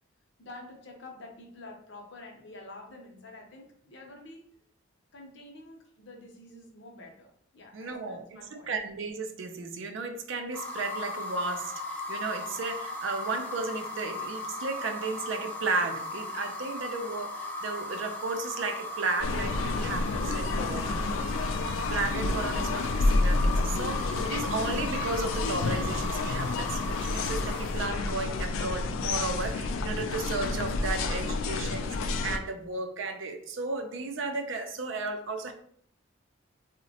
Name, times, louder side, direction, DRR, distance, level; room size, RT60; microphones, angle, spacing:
voice 1, 0.4-4.4 5.1-8.7, left 2 dB, 60° left, 2 dB, 0.7 m, -48 dB
voice 2, 7.7-21.0 21.9-35.5, right 3 dB, 70° right, 6 dB, 0.4 m, -34 dB
sound 1, 10.5-27.9, left 1 dB, 10° left, 0.4 m, -37 dB
sound 2, 19.2-32.4, left 3 dB, 80° left, 0.3 m, -29 dB
3.8 x 2.1 x 2.7 m, 0.63 s
head